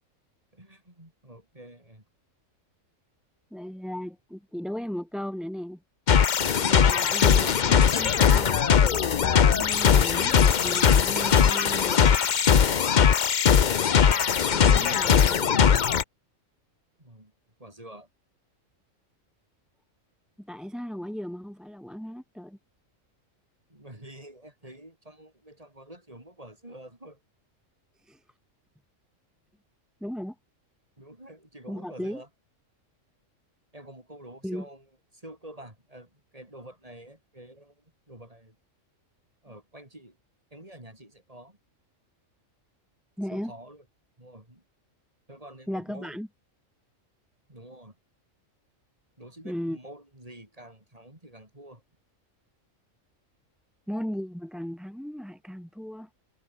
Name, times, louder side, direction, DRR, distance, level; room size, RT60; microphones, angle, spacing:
voice 1, 0.5-2.0 17.0-17.3 17.6-18.1 23.7-27.2 31.0-32.3 33.7-34.9 35.1-38.6 39.4-40.2 40.5-41.6 43.3-43.8 44.2-44.6 45.3-46.2 47.5-48.0 49.2-51.8, right 1 dB, 25° right, 5.4 m, -47 dB
voice 2, 3.5-5.8 6.6-8.6 9.2-12.1 14.5-15.7 20.4-22.6 28.0-28.2 30.0-30.3 31.7-32.2 34.4-34.6 43.2-43.5 45.7-46.3 49.4-49.8 53.9-56.1, equal, ahead, 1.4 m, -36 dB
sound 1, 6.1-16.0, left 7 dB, 45° left, 0.7 m, -20 dB
omnidirectional pair, 1.3 m